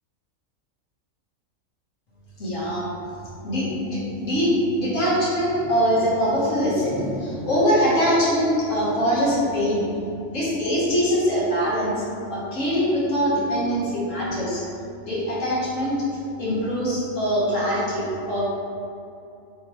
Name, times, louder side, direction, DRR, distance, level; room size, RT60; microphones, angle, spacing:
voice 1, 2.4-2.9 3.4-9.9 10.3-12.0 12.3-14.6 15.0-15.9 16.4-18.4, equal, 65° left, -7 dB, 1.5 m, -23 dB
4.6 x 3.6 x 3.0 m, 2.6 s
omnidirectional pair, 1.4 m